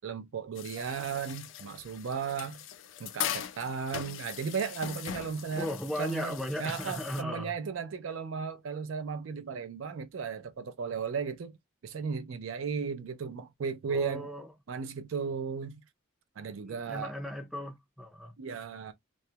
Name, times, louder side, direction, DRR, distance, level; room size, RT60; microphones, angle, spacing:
voice 1, 0.0-2.6 3.0-5.7 6.0-11.6 11.8-14.3 14.7-15.8 16.4-17.1 18.4-18.9, right 6 dB, 80° right, 0.4 m, -35 dB
sound 1, 0.5-7.2, left 10 dB, 75° left, 0.4 m, -40 dB
voice 2, 5.6-7.5 13.9-14.5 16.7-18.3, left 1 dB, ahead, 0.4 m, -36 dB
2.3 x 2.0 x 2.7 m
head